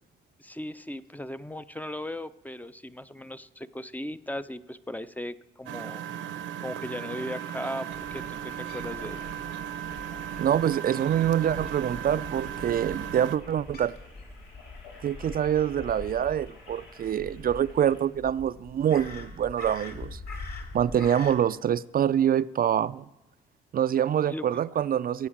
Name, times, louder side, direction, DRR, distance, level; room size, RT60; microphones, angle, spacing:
voice 1, 0.4-6.3 6.6-9.2 24.3-24.6, left 1 dB, 10° left, 12 dB, 0.6 m, -37 dB
Engine, 5.7-13.4, right 10 dB, 80° right, 0.8 m, -36 dB
sound 1, 7.2-18.0, left 3 dB, 90° left, 4.5 m, -53 dB
Crow, 7.9-21.4, left 3 dB, 50° left, 2.8 m, -44 dB
voice 2, 10.4-13.9 15.0-20.2 20.7-23.0 23.7-25.3, right 9 dB, 45° right, 14 dB, 0.4 m, -25 dB
16.0 x 8.0 x 7.3 m, 0.91 s
cardioid pair, 90°, 20 cm